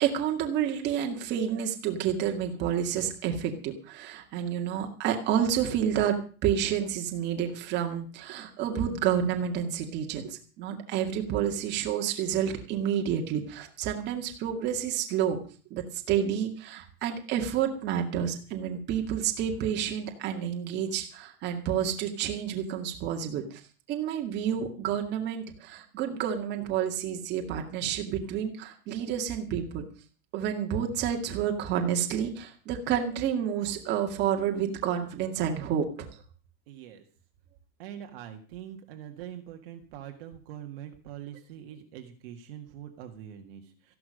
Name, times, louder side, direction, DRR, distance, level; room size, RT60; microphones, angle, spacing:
voice 1, 0.0-6.2 6.4-15.4 15.7-23.6 23.9-29.8 30.3-36.1, right 9 dB, 25° right, 3 dB, 2.1 m, -29 dB
voice 2, 36.7-37.0 37.8-44.0, right 10 dB, 40° right, 4 dB, 1.9 m, -43 dB
14.5 x 11.5 x 6.5 m, 0.39 s
supercardioid pair, 180°, 45 cm